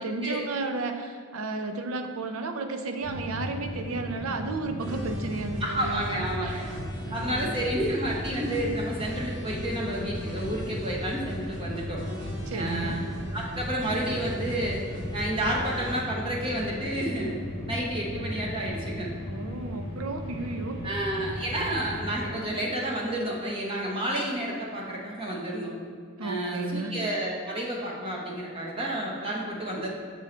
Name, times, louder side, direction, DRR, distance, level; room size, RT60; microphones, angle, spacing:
voice 1, 0.0-6.7 7.1-7.5 12.5-13.0 19.3-20.9 26.2-27.0, right 3 dB, 70° right, 6 dB, 0.5 m, -33 dB
sound 1, 3.0-22.3, left 1 dB, 25° left, 0.9 m, -37 dB
sound 2, 4.8-15.9, equal, 50° right, 1.4 m, -40 dB
voice 2, 5.6-6.6 7.1-12.0 12.5-13.0 13.3-14.8 15.1-17.4 17.7-19.1 20.8-25.7 26.2-29.9, right 1 dB, 25° right, -3 dB, 0.7 m, -30 dB
6.4 x 3.8 x 4.2 m, 2.1 s
head